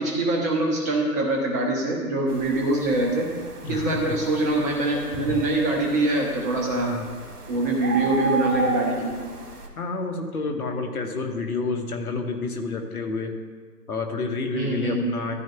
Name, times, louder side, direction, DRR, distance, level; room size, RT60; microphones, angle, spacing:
voice 1, 0.0-3.3 3.7-6.9 7.5-9.2 14.5-15.0, right 2 dB, 10° right, -1 dB, 0.6 m, -24 dB
sound 1, 2.3-9.7, right 2 dB, 70° right, 1.7 m, -33 dB
voice 2, 3.6-4.2 6.8-7.1 9.8-13.3 13.9-15.3, left 3 dB, 65° left, 4 dB, 1.4 m, -29 dB
13.5 x 8.8 x 2.3 m, 1.5 s
figure-of-eight pair, 135°, 48 cm